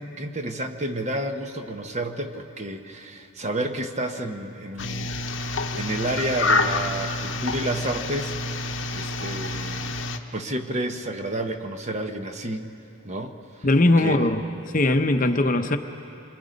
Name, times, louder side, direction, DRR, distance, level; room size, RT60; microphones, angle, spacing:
voice 1, 0.0-10.0 10.3-12.7 13.0-13.3 14.0-14.3, right 1 dB, 35° right, 6 dB, 1.1 m, -30 dB
sound 1, 4.8-10.2, left 2 dB, 65° left, 1.0 m, -28 dB
voice 2, 13.6-14.4 14.7-15.8, left 2 dB, 40° left, 7 dB, 0.8 m, -20 dB
27.0 x 23.5 x 5.2 m, 2.7 s
head